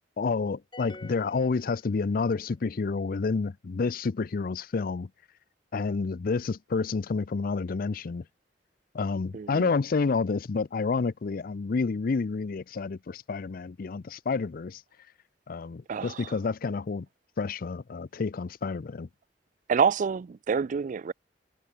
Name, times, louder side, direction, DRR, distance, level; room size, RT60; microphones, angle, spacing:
voice 1, 0.2-5.1 5.7-8.2 8.9-14.8 15.5-17.1 17.4-19.1, left 4 dB, 55° left, 0.5 m, -29 dB
sound 1, 0.7-2.4, left 2 dB, 30° left, 2.7 m, -49 dB
voice 2, 9.3-9.7 15.9-16.3 19.7-21.1, right 6 dB, 45° right, 0.4 m, -27 dB
head